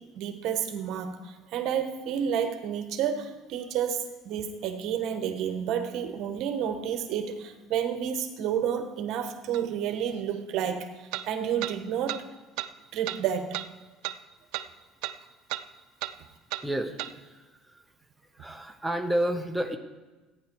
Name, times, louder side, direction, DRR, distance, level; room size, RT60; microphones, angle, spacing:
voice 1, 0.0-12.2 12.9-13.6, right 8 dB, 60° right, 7 dB, 1.2 m, -30 dB
sound 1, 9.5-9.6 11.1-11.3 11.6-11.8 12.1-12.2 12.6-12.7 13.1-13.2 13.5-13.7 14.0-14.2 14.5-14.7 15.0-15.2 15.5-15.7 16.0-16.2 16.5-16.7 17.0-17.1, right 15 dB, 75° right, 0.5 m, -33 dB
voice 2, 16.6-17.8 18.3-19.8, right 1 dB, 5° right, 3 dB, 0.7 m, -31 dB
14.5 x 9.4 x 4.6 m, 1.2 s
cardioid pair, 135°, 0 cm